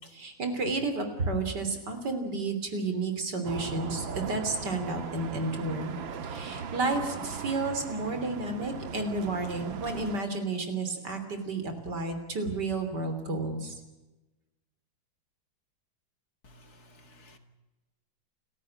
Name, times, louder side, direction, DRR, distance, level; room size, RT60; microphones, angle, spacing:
voice 1, 0.1-6.0 6.2-13.7, right 3 dB, 60° right, 7 dB, 3.8 m, -31 dB
sound 1, 3.4-10.2, right 6 dB, 85° right, 2.2 m, -38 dB
voice 2, 16.4-17.4, left 2 dB, 55° left, 8 dB, 2.5 m, -55 dB
29.0 x 14.5 x 8.8 m, 1.1 s
omnidirectional pair, 2.1 m